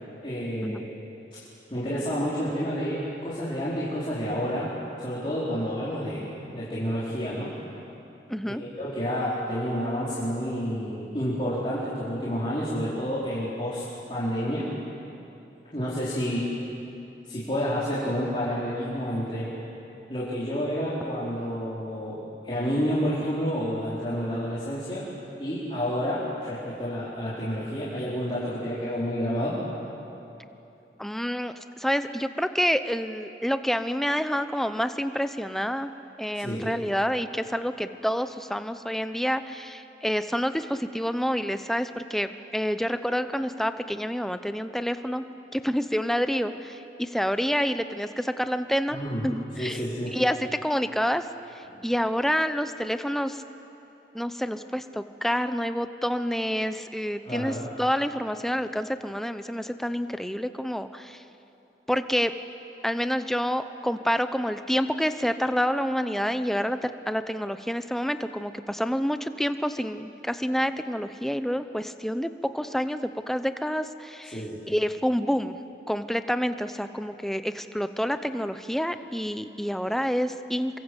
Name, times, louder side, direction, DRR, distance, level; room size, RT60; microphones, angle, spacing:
voice 1, 0.2-0.9 1.3-1.4 1.7-4.7 5.0-7.5 8.4-13.8 14.1-14.7 15.7-16.5 17.2-19.5 20.1-25.0 25.4-29.6 36.3-36.7 48.9-49.3 49.6-50.2 51.7-51.9 57.2-57.7 74.3-74.7, equal, 30° left, -9 dB, 4.5 m, -29 dB
voice 2, 8.3-8.6 31.0-35.9 36.2-45.2 45.5-49.0 49.2-49.8 50.1-51.3 51.5-53.4 54.1-61.2 61.9-62.3 62.8-75.6 75.9-80.8, equal, ahead, 10 dB, 0.7 m, -28 dB
28.0 x 23.5 x 8.1 m, 2.9 s
head